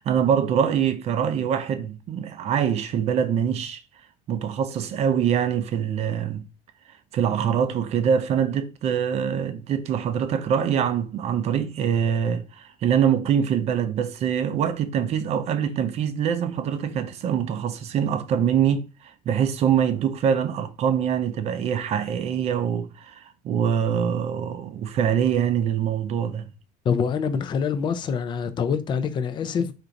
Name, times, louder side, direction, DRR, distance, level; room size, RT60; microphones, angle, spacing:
voice 1, 0.0-3.8 4.3-6.4 7.1-26.5, right 8 dB, 35° right, 0.5 m, -24 dB
voice 2, 26.9-29.7, left 6 dB, 25° left, 0.4 m, -25 dB
4.4 x 2.5 x 3.9 m
cardioid pair, 175°, 18 cm